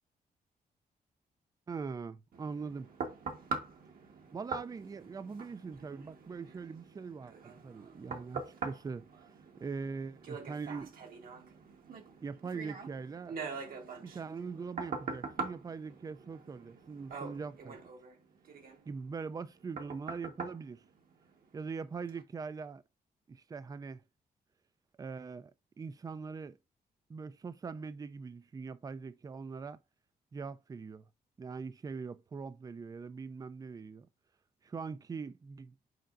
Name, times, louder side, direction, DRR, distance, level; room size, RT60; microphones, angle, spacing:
voice 1, 1.7-2.9 4.3-9.1 9.6-11.0 12.2-13.4 14.0-17.8 18.9-20.8 21.5-22.8 23.3-24.0 25.0-25.5 25.8-26.6 27.1-29.8 30.3-31.0 31.4-34.1 34.7-35.7, right 5 dB, 25° right, 0.4 m, -42 dB
sound 1, 2.3-21.6 22.1-22.2, right 4 dB, 70° right, 1.4 m, -44 dB
7.8 x 5.0 x 2.5 m
wide cardioid pair, 130°, 16 cm